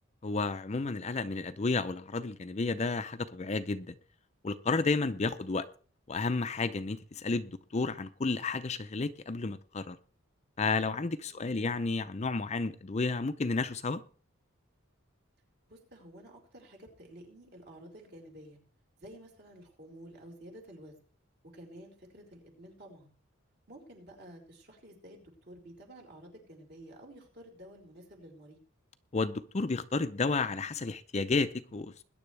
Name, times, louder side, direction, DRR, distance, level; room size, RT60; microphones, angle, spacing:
voice 1, 0.2-4.0 4.4-5.7 6.1-10.0 10.6-14.0 29.1-32.0, left 3 dB, 30° left, 0.5 m, -31 dB
voice 2, 11.3-11.7 15.7-18.6 19.0-21.0 21.5-23.1 23.7-28.6, right 1 dB, 50° right, 4.4 m, -51 dB
21.0 x 10.0 x 3.3 m
head